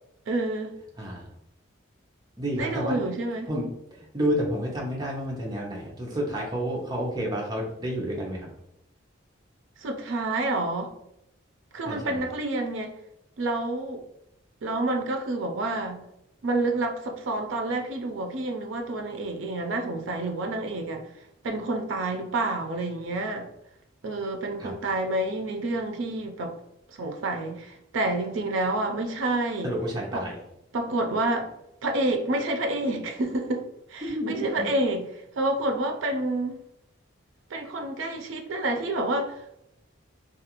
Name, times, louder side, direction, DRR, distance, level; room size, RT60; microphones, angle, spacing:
voice 1, 0.3-0.8 2.5-3.5 9.8-10.9 11.7-12.9 13.4-14.0 14.6-16.0 16.4-21.1 21.4-23.5 24.0-26.5 26.9-29.7 30.1-30.2 30.7-31.5 31.8-35.1 35.4-36.6 37.5-39.4, right 2 dB, 70° right, 4 dB, 0.4 m, -28 dB
voice 2, 1.0-1.3 2.4-3.0 3.4-8.5 11.9-12.3 24.6-24.7 29.6-30.4 34.0-34.7, equal, 20° right, -2 dB, 0.6 m, -30 dB
2.4 x 2.3 x 2.9 m, 0.81 s
head